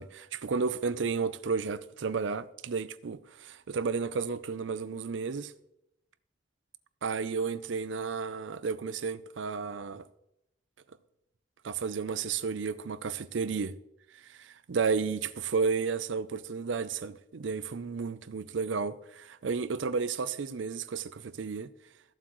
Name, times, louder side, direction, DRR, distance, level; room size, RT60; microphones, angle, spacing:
voice 1, 0.0-5.5 7.0-10.1 11.6-13.8 14.1-21.7, right 5 dB, 75° right, 0.5 m, -32 dB
14.5 x 7.5 x 3.1 m
head